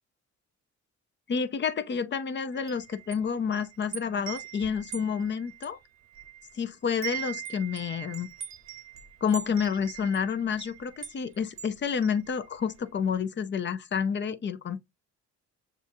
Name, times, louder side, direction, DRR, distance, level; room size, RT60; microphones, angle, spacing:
voice 1, 1.3-5.8 6.5-8.3 9.2-14.8, left 6 dB, 40° left, 0.6 m, -29 dB
Wind chime, 2.5-6.6 6.9-12.8, right 11 dB, 60° right, 0.7 m, -42 dB
6.7 x 2.5 x 2.7 m
cardioid pair, 90°, 30 cm